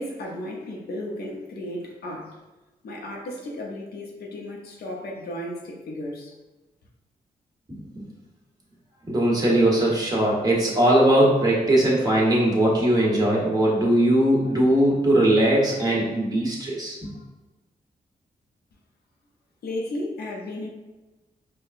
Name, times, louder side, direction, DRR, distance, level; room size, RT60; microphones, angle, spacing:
voice 1, 0.0-2.4 2.8-6.4 19.6-20.7, left 1 dB, 75° left, -1 dB, 0.7 m, -34 dB
voice 2, 9.1-17.1, right 1 dB, 25° right, -4 dB, 1.2 m, -20 dB
4.6 x 2.2 x 2.5 m, 1.1 s
cardioid pair, 75°, 16 cm